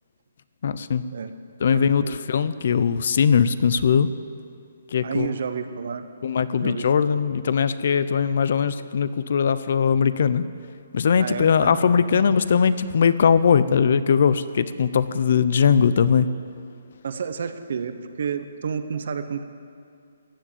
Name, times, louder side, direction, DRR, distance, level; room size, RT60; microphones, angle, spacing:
voice 1, 0.6-1.0 1.6-4.1 4.9-5.3 6.2-10.4 10.9-16.3, left 6 dB, 50° left, 14 dB, 0.6 m, -20 dB
voice 2, 1.7-2.2 5.0-6.1 6.6-6.9 11.2-12.4 17.0-19.4, right 6 dB, 55° right, 10 dB, 1.0 m, -31 dB
15.0 x 7.3 x 9.0 m, 2.3 s
hypercardioid pair, 165°, 0 cm